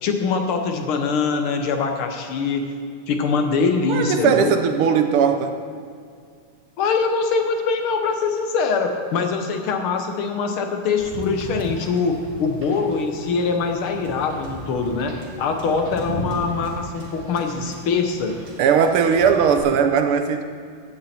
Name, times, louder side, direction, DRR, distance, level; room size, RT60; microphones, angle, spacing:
voice 1, 0.0-2.7 3.1-4.5 6.8-18.3, left 4 dB, 75° left, 5 dB, 1.9 m, -23 dB
voice 2, 3.9-5.6 18.6-20.4, right 7 dB, 80° right, 6 dB, 1.7 m, -18 dB
Wind / Boat Water vehicle, 11.0-19.6, right 1 dB, 55° right, 2.7 m, -36 dB
15.5 x 8.7 x 4.3 m, 2.2 s
omnidirectional pair, 2.4 m